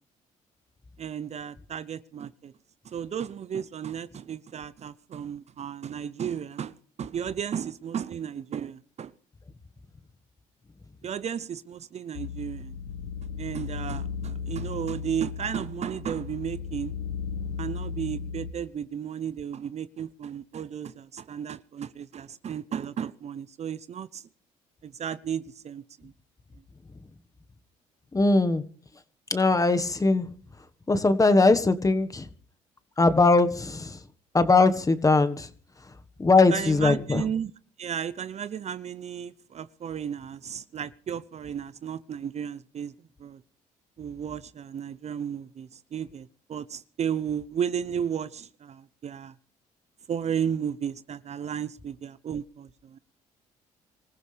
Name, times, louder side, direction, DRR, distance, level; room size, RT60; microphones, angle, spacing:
voice 1, 1.0-2.5 2.9-9.1 11.0-12.7 13.4-16.9 17.6-24.2 24.8-26.1 36.5-37.5 37.8-42.9 43.2-43.4 44.0-49.3 50.1-53.0, right 8 dB, 45° right, 0.7 m, -34 dB
sound 1, 12.1-18.5, left 6 dB, 80° left, 1.1 m, -35 dB
voice 2, 28.1-28.6 29.3-30.3 30.9-32.3 33.0-34.0 34.3-35.5 36.2-37.2, left 3 dB, 20° left, 1.5 m, -21 dB
25.5 x 15.0 x 3.4 m
supercardioid pair, 70°, 15 cm